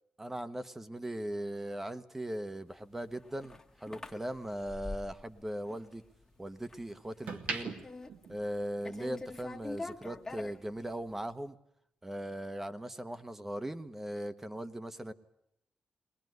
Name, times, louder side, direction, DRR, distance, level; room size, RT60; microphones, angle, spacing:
voice 1, 0.2-6.0 6.4-7.8 8.3-11.6 12.0-15.1, right 1 dB, 15° right, 11 dB, 1.1 m, -39 dB
sound 1, 2.4-4.8 5.2-6.6 7.0-9.2 9.5-9.7, right 4 dB, 90° right, 2.5 m, -43 dB
sound 2, 2.9-5.4 5.7-6.2 6.6-6.9 7.2-8.6 8.8-11.1, left 2 dB, 20° left, 1.2 m, -45 dB
21.0 x 20.5 x 9.4 m, 0.77 s
cardioid pair, 120°, 3 cm